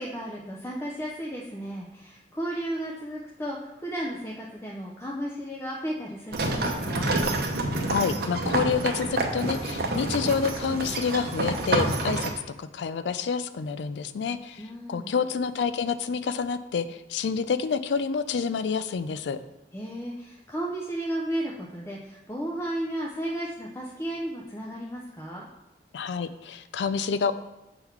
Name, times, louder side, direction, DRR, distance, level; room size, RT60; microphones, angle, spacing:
voice 1, 0.0-7.2 14.6-15.1 19.7-25.5, right 1 dB, 15° left, -3 dB, 0.5 m, -34 dB
sound 1, 6.3-12.3, right 2 dB, 60° right, 0.8 m, -28 dB
voice 2, 7.9-12.3 12.6-19.4 25.9-27.3, left 5 dB, 80° left, 12 dB, 0.4 m, -28 dB
7.0 x 3.8 x 4.5 m, 0.94 s
head